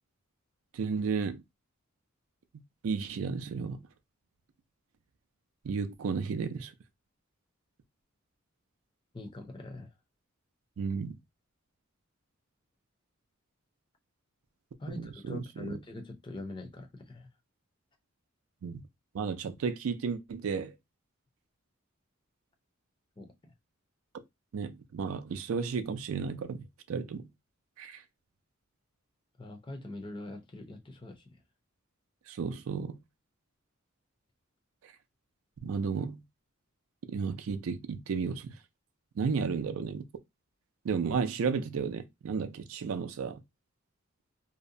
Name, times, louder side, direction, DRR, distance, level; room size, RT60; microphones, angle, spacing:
voice 1, 0.7-1.4 2.8-3.8 5.6-6.7 10.8-11.2 14.9-15.7 18.6-18.8 19.1-20.7 24.5-27.3 27.8-28.0 32.3-33.0 35.6-36.2 37.1-38.5 39.2-40.1 40.8-43.4, right 5 dB, 75° right, 0.4 m, -33 dB
voice 2, 9.1-9.9 14.8-17.3 23.2-23.3 29.4-31.4, left 2 dB, 25° left, 0.5 m, -43 dB
2.7 x 2.1 x 2.5 m
head